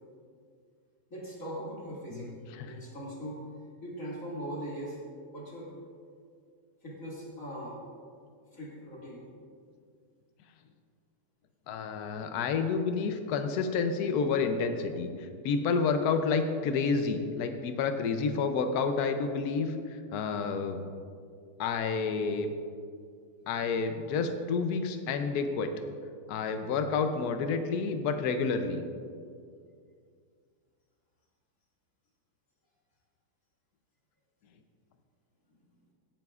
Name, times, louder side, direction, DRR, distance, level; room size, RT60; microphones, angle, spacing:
voice 1, 1.1-2.3 2.7-3.5 3.8-5.0 5.3-5.7 6.8-7.8 8.5-9.3, equal, 40° left, -5 dB, 2.5 m, -40 dB
voice 2, 2.1-2.7 11.7-20.9 21.6-22.5 23.5-25.7 26.3-28.8, left 5 dB, 85° left, 7 dB, 0.8 m, -29 dB
16.5 x 9.1 x 2.4 m, 2.2 s
omnidirectional pair, 2.4 m